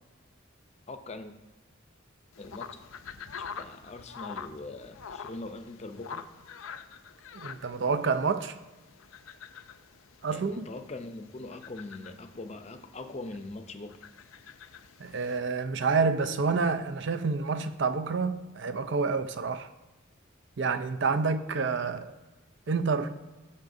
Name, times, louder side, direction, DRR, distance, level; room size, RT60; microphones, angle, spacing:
voice 1, 0.9-1.3 2.4-2.8 3.4-6.3 10.3-14.0, left 2 dB, 30° left, 0.6 m, -42 dB
sound 1, 2.3-15.4, left 6 dB, 90° left, 0.5 m, -46 dB
voice 2, 7.3-8.6 10.2-10.7 15.0-19.7 20.6-22.1 22.7-23.2, right 4 dB, 60° right, 0.5 m, -28 dB
19.0 x 6.6 x 2.7 m
head